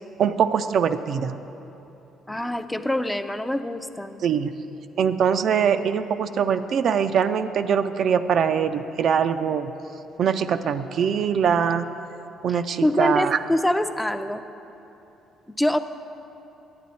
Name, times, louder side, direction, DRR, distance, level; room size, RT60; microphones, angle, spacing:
voice 1, 0.2-1.4 4.2-4.5 5.0-9.7 10.2-11.9 12.4-13.4, right 7 dB, 60° right, 9 dB, 0.3 m, -22 dB
voice 2, 2.3-4.2 12.5-14.4 15.5-15.8, left 1 dB, 10° left, 9 dB, 0.5 m, -25 dB
10.5 x 9.2 x 4.2 m, 3.0 s
hypercardioid pair, 60°, 0 cm